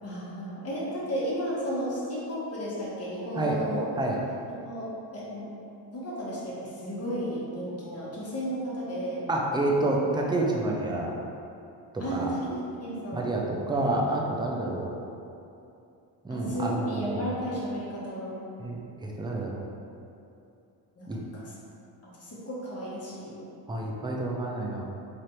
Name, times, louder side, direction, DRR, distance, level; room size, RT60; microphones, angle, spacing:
voice 1, 0.0-3.8 4.6-5.5 5.9-9.2 12.0-12.5 12.8-13.3 14.7-14.8 16.3-18.4 21.0-21.5 22.1-23.4, equal, 35° left, -6 dB, 1.1 m, -33 dB
voice 2, 9.3-11.2 11.9-12.3 13.1-14.9 16.2-17.3 18.6-19.6 21.1-21.2 23.7-24.8, right 2 dB, 10° right, -2 dB, 0.4 m, -28 dB
3.3 x 2.5 x 4.3 m, 2.7 s
cardioid pair, 100°, 45 cm